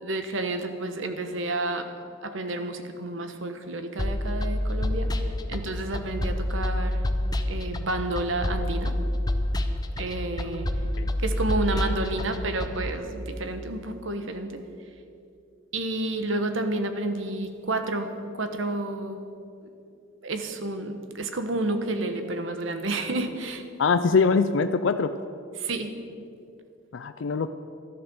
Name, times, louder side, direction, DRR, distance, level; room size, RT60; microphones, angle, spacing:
voice 1, 0.0-1.9 2.2-5.1 5.5-7.0 7.5-8.9 10.0-10.7 11.2-14.6 15.7-18.1 18.4-19.2 20.2-23.6 25.6-25.9, right 2 dB, 70° right, 7 dB, 1.2 m, -30 dB
sound 1, 4.0-12.9, left 1 dB, 20° left, 0.6 m, -28 dB
voice 2, 23.8-25.1 26.9-27.5, left 5 dB, 65° left, 9 dB, 0.4 m, -23 dB
13.0 x 11.0 x 7.0 m, 2.5 s
head